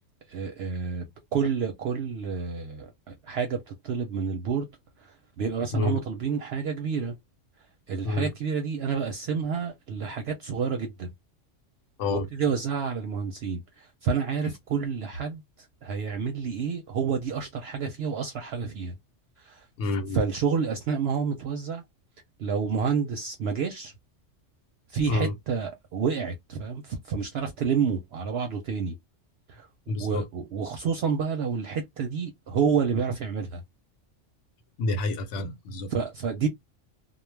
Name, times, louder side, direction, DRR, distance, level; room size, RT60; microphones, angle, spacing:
voice 1, 0.3-4.7 5.0-7.1 7.9-11.1 12.1-15.4 15.8-19.0 19.4-19.7 20.1-21.8 22.4-23.9 24.9-29.0 29.5-29.7 30.0-33.6 35.9-36.5, right 6 dB, 65° right, 0.7 m, -29 dB
voice 2, 19.8-20.2 25.1-25.3 29.9-30.2 34.8-35.9, left 2 dB, 75° left, 1.0 m, -28 dB
2.3 x 2.1 x 3.1 m
omnidirectional pair, 1.3 m